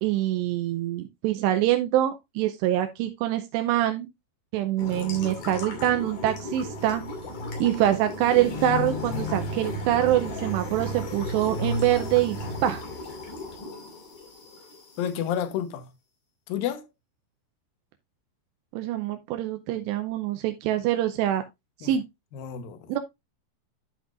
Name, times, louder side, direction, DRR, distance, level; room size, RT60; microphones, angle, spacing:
voice 1, 0.0-4.1 4.5-7.0 7.6-12.8 18.7-21.4 21.8-22.0 22.9-23.0, right 12 dB, 85° right, 2.8 m, -25 dB
sound 1, 4.8-15.2, left 2 dB, 50° left, 3.7 m, -34 dB
voice 2, 15.0-15.9 16.5-16.9 21.8-21.9 22.3-22.9, left 9 dB, 70° left, 2.5 m, -30 dB
12.0 x 5.8 x 2.5 m
omnidirectional pair, 5.0 m